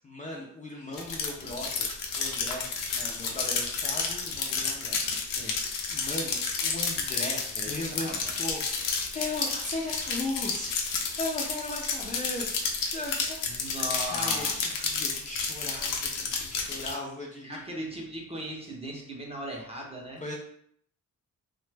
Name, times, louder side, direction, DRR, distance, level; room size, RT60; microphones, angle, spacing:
voice 1, 0.0-5.5 5.9-13.7 14.0-17.6 20.2-20.4, left 2 dB, 25° left, -2 dB, 0.4 m, -38 dB
sound 1, 0.9-16.9, left 5 dB, 80° left, 0.6 m, -31 dB
voice 2, 5.2-5.6 7.5-8.4 13.5-15.0 17.4-20.2, equal, 20° right, -1 dB, 0.6 m, -38 dB
2.9 x 2.1 x 3.2 m, 0.67 s
cardioid pair, 140°, 32 cm